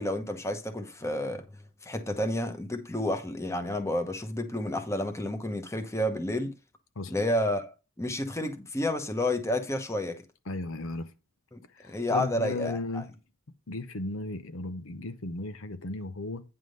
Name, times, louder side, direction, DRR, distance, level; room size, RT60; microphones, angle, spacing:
voice 1, 0.0-1.4 1.8-6.5 7.1-10.2 11.5-11.6 11.9-13.0, left 1 dB, 15° left, 1.0 m, -30 dB
voice 2, 10.5-11.1 11.8-13.1 13.7-16.4, left 2 dB, 70° left, 0.8 m, -35 dB
9.3 x 3.7 x 6.5 m
head